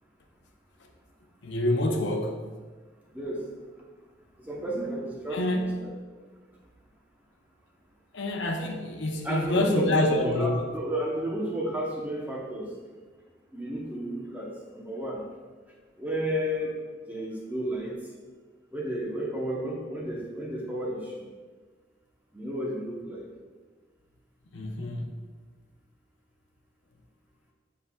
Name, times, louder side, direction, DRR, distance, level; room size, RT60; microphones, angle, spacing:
voice 1, 1.4-2.4 5.3-5.8 8.1-10.7 24.5-25.2, left 1 dB, 75° left, 2 dB, 0.7 m, -27 dB
voice 2, 3.1-3.4 4.4-5.9 9.2-12.7 13.5-15.2 16.0-16.8 17.1-17.9 18.7-21.3 22.3-23.3, equal, 10° right, -2 dB, 0.8 m, -32 dB
7.9 x 5.7 x 2.3 m, 1.4 s
head